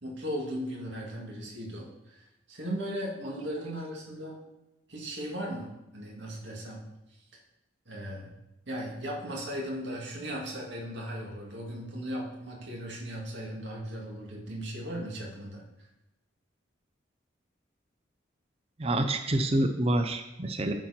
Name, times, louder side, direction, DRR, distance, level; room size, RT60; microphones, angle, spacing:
voice 1, 0.0-4.4 4.9-6.9 7.9-8.3 8.7-15.6, equal, 70° right, -2 dB, 2.1 m, -37 dB
voice 2, 18.8-20.7, right 1 dB, 30° right, 6 dB, 0.5 m, -27 dB
12.0 x 4.4 x 4.3 m, 0.94 s
head